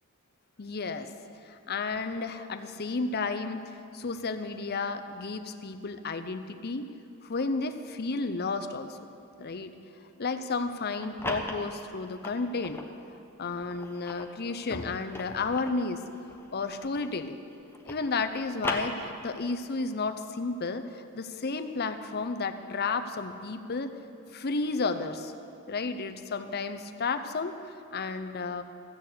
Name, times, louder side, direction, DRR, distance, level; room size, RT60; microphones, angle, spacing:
voice 1, 0.6-1.1 1.5-3.6 3.9-6.9 7.2-9.1 9.4-9.7 10.2-12.8 13.4-16.0 16.5-17.4 17.9-23.9 24.3-25.3 25.7-28.6, left 4 dB, 45° left, 9 dB, 0.6 m, -32 dB
sound 1, 10.8-12.9 13.5-17.2 17.5-19.5, left 1 dB, 10° left, 0.9 m, -39 dB
15.0 x 6.8 x 8.3 m, 2.6 s
head